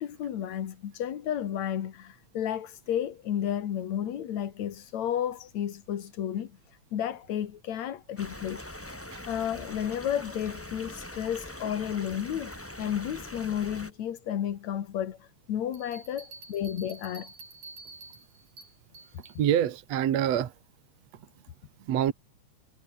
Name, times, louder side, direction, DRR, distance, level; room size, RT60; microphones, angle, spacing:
voice 1, 0.0-8.9 9.3-17.3, left 10 dB, 70° left, 2.9 m, -32 dB
sound 1, 8.2-13.9, left 1 dB, 5° left, 1.7 m, -42 dB
Bell, 15.7-19.4, right 3 dB, 90° right, 9.1 m, -49 dB
voice 2, 19.3-20.5 21.9-22.1, right 10 dB, 65° right, 2.5 m, -26 dB
omnidirectional pair, 3.4 m